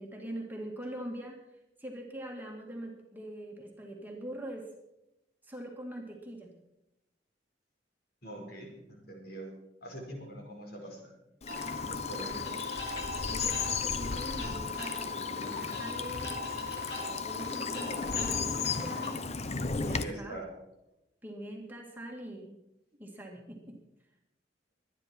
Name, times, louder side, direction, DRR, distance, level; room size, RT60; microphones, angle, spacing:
voice 1, 0.0-1.4 1.8-4.7 5.4-6.5 12.2-12.4 12.9-16.4 17.0-19.2 19.7-20.4 21.2-22.6 23.0-23.8, right 1 dB, 10° right, 0 dB, 2.1 m, -43 dB
voice 2, 8.2-9.5 9.8-11.1 11.9-12.4 19.9-20.5, right 1 dB, 60° left, 1 dB, 4.8 m, -43 dB
Bird vocalization bird call bird song / Stream, 11.4-20.0, left 4 dB, 35° left, 0.7 m, -35 dB
sound 1, 11.5-19.1, left 4 dB, 75° left, 5.1 m, -38 dB
23.5 x 10.0 x 4.5 m, 0.91 s
head